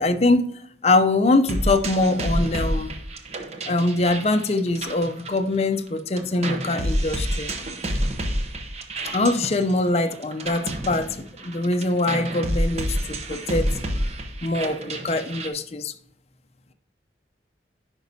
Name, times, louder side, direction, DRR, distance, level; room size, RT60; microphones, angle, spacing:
voice 1, 0.0-2.9 3.7-7.5 9.1-13.7 14.4-15.9, left 2 dB, 35° left, 8 dB, 0.5 m, -23 dB
sound 1, 1.5-5.9 6.2-15.5, right 1 dB, 35° right, 0.8 m, -29 dB
9.2 x 5.2 x 2.7 m, 0.71 s
head